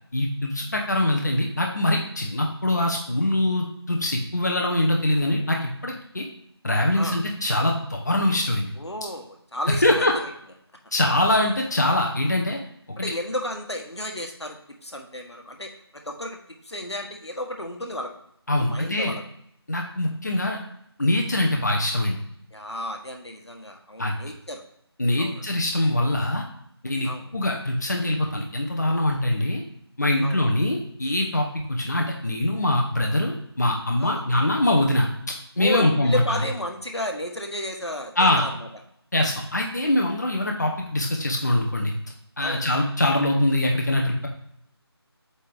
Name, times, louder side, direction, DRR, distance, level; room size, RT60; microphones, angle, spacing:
voice 1, 0.1-6.3 6.6-8.7 9.7-10.2 10.9-12.6 13.0-13.1 18.5-19.1 19.7-20.6 21.0-22.2 24.0-24.2 25.0-26.4 26.8-29.6 30.0-35.1 35.6-36.4 38.2-38.5 39.1-41.9 42.4-44.3, left 1 dB, 40° left, 1 dB, 1.0 m, -23 dB
voice 2, 8.7-10.3 13.0-18.1 18.6-19.2 22.5-24.6 25.2-25.5 27.0-27.3 30.2-30.4 34.0-34.2 35.6-38.7 42.4-42.7, left 1 dB, 80° left, 3 dB, 1.4 m, -33 dB
8.4 x 3.8 x 3.5 m, 0.71 s
figure-of-eight pair, 170°, 14 cm